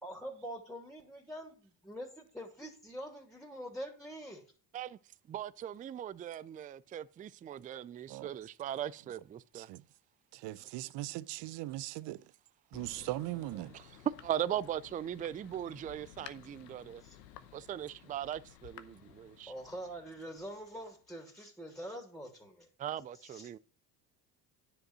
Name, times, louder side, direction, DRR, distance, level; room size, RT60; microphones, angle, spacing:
voice 1, 0.0-4.4 17.0-17.2 19.5-22.7 23.2-23.6, equal, ahead, 2.9 m, -45 dB
voice 2, 5.3-9.7 13.0-13.1 13.6-17.0 17.5-19.5 22.8-23.6, right 10 dB, 20° right, 0.3 m, -39 dB
voice 3, 10.3-12.2 12.7-13.7, right 17 dB, 55° right, 0.7 m, -39 dB
Thunder, 12.7-21.1, left 11 dB, 85° left, 0.9 m, -55 dB
9.9 x 5.2 x 6.1 m
hypercardioid pair, 65°, 49 cm